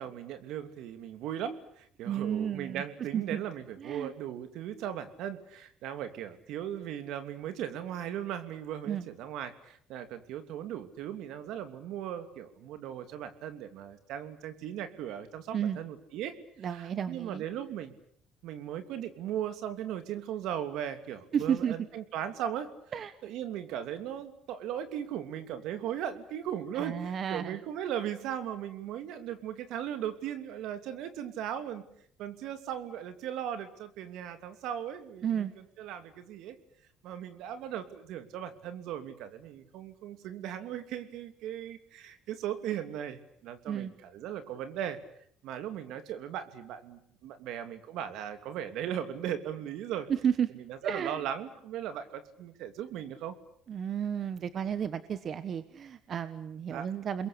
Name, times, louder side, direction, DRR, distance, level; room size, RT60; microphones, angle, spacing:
voice 1, 0.0-16.4 16.7-17.9 18.4-22.7 23.2-31.8 32.2-35.4 35.8-36.6 37.0-45.0 45.4-50.1 50.8-53.3 56.7-56.9, right 10 dB, 75° right, 9 dB, 2.9 m, -38 dB
voice 2, 2.0-2.8 3.1-3.4 3.8-4.1 8.9-9.0 15.5-15.8 16.6-17.4 21.3-21.7 22.9-23.1 26.7-27.6 35.2-35.5 43.7-43.9 50.1-50.5 50.8-51.2 53.7-57.3, right 8 dB, 45° right, 13 dB, 1.3 m, -32 dB
29.5 x 22.0 x 8.6 m, 0.65 s
cardioid pair, 105°, 0 cm